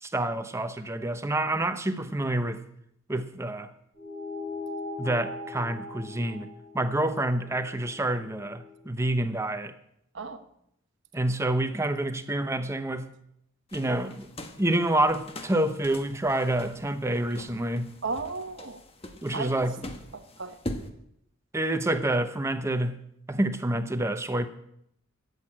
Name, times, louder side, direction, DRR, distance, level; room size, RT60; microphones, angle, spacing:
voice 1, 0.0-2.6 3.1-3.7 5.0-6.5 6.7-9.7 11.1-13.1 13.7-14.3 14.6-17.9 19.2-19.8 21.5-24.5, right 1 dB, 15° right, 0.8 m, -28 dB
sound 1, 3.9-8.8, left 3 dB, 55° left, 3.8 m, -40 dB
sound 2, 13.7-20.9, left 1 dB, 30° left, 1.3 m, -42 dB
voice 2, 18.0-18.8 19.3-19.6 20.1-20.6, right 4 dB, 60° right, 1.1 m, -34 dB
13.0 x 8.2 x 8.7 m
head